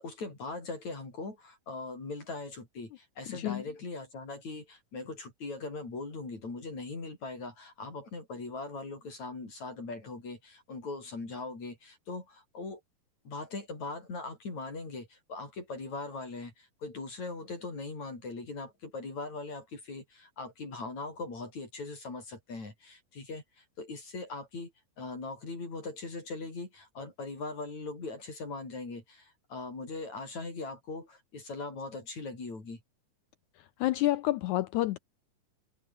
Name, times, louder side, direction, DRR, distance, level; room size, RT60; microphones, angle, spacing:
voice 1, 0.0-12.8 13.2-24.7 25.0-32.8, left 3 dB, 50° left, 7.8 m, -40 dB
voice 2, 3.3-3.6 33.8-35.0, left 16 dB, 80° left, 1.8 m, -28 dB
omnidirectional pair, 4.0 m